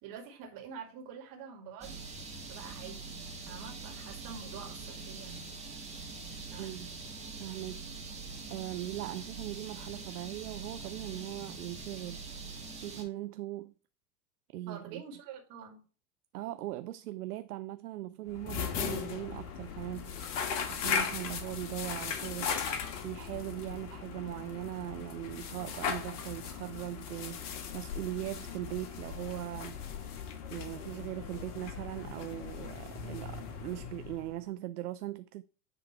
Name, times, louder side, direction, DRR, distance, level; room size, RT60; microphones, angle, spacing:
voice 1, 0.0-1.9 2.5-3.2 3.5-5.4 6.4-6.7 14.7-15.8, right 6 dB, 45° right, 2.2 m, -46 dB
sound 1, 1.8-13.0, right 3 dB, 15° right, 1.8 m, -44 dB
voice 2, 6.6-6.9 7.4-12.5 12.7-13.7 14.5-15.0 16.3-20.2 20.7-22.6 23.0-29.7 30.5-35.4, right 15 dB, 70° right, 0.5 m, -40 dB
sound 2, 18.3-34.4, left 6 dB, 50° left, 1.4 m, -38 dB
9.8 x 3.5 x 4.5 m
figure-of-eight pair, 90°, 47 cm